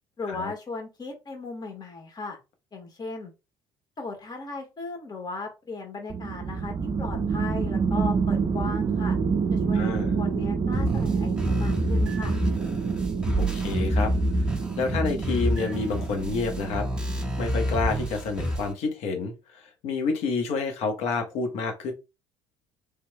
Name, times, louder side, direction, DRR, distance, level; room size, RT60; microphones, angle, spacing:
voice 1, 0.2-2.4 2.7-3.3 4.0-6.7 7.0-9.2 9.5-12.4, left 3 dB, 35° left, 3 dB, 1.5 m, -37 dB
sound 1, 6.1-18.2, right 5 dB, 35° right, 0.5 m, -28 dB
voice 2, 9.7-10.2 13.4-14.1 14.8-16.9 17.4-21.9, left 4 dB, 65° left, 4 dB, 1.1 m, -29 dB
sound 2, 10.7-18.7, equal, 10° right, 1.5 m, -28 dB
3.5 x 3.0 x 2.2 m, 0.26 s
hypercardioid pair, 65°, 12 cm